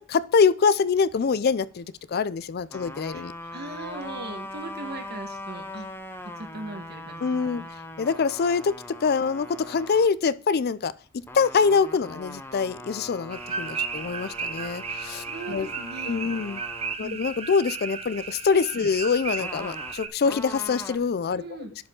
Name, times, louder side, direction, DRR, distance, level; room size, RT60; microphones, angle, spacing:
voice 1, 0.0-3.3 7.2-7.6 8.0-10.9 11.3-15.7 16.1-16.6 17.0-21.4, left 5 dB, 50° left, 0.4 m, -24 dB
sound 1, 2.7-10.1 11.2-16.9 19.4-21.0, left 1 dB, 10° left, 0.7 m, -40 dB
voice 2, 3.5-5.9 6.4-7.7 15.2-16.2 16.8-17.5 18.7-18.9 21.4-21.7, right 2 dB, 55° right, 1.3 m, -39 dB
sound 2, 13.3-20.1, right 5 dB, 30° right, 0.6 m, -34 dB
11.0 x 4.9 x 3.7 m
head